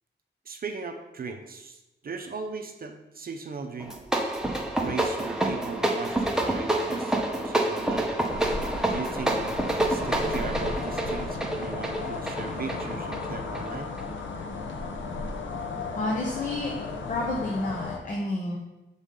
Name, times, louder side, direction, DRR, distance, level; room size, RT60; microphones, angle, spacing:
voice 1, 0.5-4.0 4.8-8.1 8.5-9.4 9.8-13.9, right 5 dB, 50° right, 5 dB, 0.5 m, -38 dB
sound 1, 3.8-14.1, right 1 dB, 5° right, 0.6 m, -28 dB
sound 2, 8.3-18.0, left 3 dB, 85° left, 0.7 m, -35 dB
voice 2, 16.0-16.7 17.1-18.6, left 2 dB, 45° left, -1 dB, 0.8 m, -29 dB
6.9 x 4.0 x 3.7 m, 0.97 s
wide cardioid pair, 180°, 19 cm